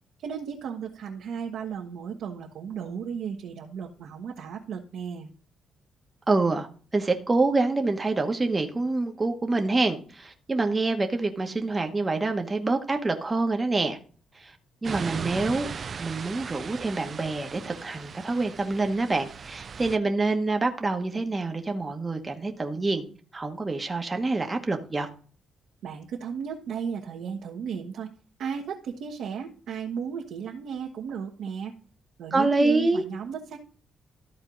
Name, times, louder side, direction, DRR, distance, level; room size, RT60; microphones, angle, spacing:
voice 1, 0.2-5.3 25.8-28.1 28.4-31.8 32.2-33.6, right 7 dB, 75° right, 1.2 m, -34 dB
voice 2, 6.3-6.7 6.9-14.0 14.4-14.6 14.8-15.7 16.0-23.0 23.3-25.1 32.3-33.0, right 3 dB, 20° right, 1.1 m, -26 dB
sound 1, 14.8-20.0, right 6 dB, 40° right, 0.3 m, -38 dB
13.5 x 4.4 x 3.8 m
cardioid pair, 120°, 0 cm